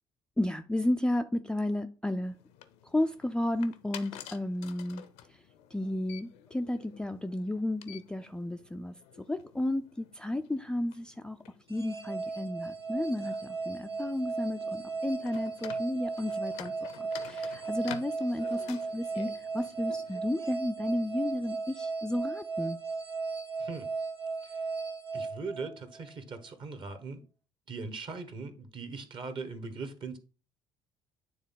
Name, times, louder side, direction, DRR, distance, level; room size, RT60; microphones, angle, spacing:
voice 1, 0.4-2.4 2.8-5.0 5.7-8.9 9.3-11.4 11.7-16.7 17.0-22.8, left 1 dB, 5° left, 0.4 m, -33 dB
sound 1, 2.2-20.2, left 11 dB, 60° left, 0.6 m, -51 dB
sound 2, 11.7-26.1, right 4 dB, 90° right, 0.7 m, -36 dB
voice 2, 25.1-27.2 27.7-30.2, right 4 dB, 40° right, 1.2 m, -40 dB
9.3 x 3.4 x 3.8 m
figure-of-eight pair, 55°, 13 cm